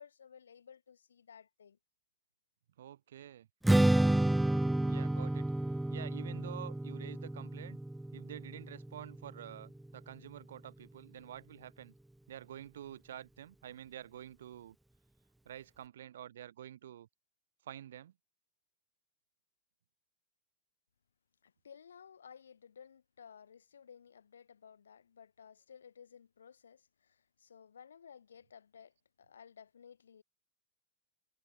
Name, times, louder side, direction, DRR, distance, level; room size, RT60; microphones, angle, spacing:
voice 1, 0.0-1.8 21.4-30.2, left 7 dB, 70° left, 2.9 m, -56 dB
voice 2, 2.8-3.5 4.8-5.5 5.9-7.8 8.1-11.9 12.3-14.8 15.4-17.1 17.6-18.1, right 11 dB, 60° right, 6.6 m, -48 dB
Strum, 3.6-9.9, right 1 dB, 5° right, 0.3 m, -31 dB
figure-of-eight pair, 90°, 0 cm